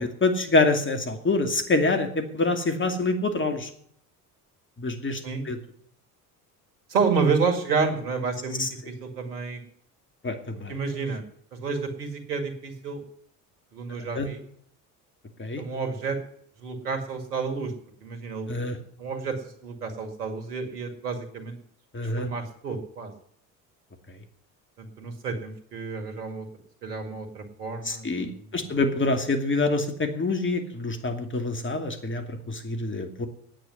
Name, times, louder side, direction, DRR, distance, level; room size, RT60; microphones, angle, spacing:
voice 1, 0.0-3.7 4.8-5.6 8.6-8.7 10.2-10.7 14.1-14.3 15.4-15.6 18.5-18.8 21.9-22.3 27.8-33.3, left 3 dB, 25° left, 6 dB, 2.5 m, -26 dB
voice 2, 6.9-9.6 10.7-11.2 11.5-13.0 13.7-14.4 15.6-16.2 16.6-17.7 18.0-18.5 19.0-19.3 19.6-21.6 22.2-23.1 24.8-26.5 26.8-28.8, right 5 dB, 85° right, 6 dB, 2.1 m, -30 dB
9.2 x 8.9 x 9.6 m, 0.64 s
hypercardioid pair, 60°, 46 cm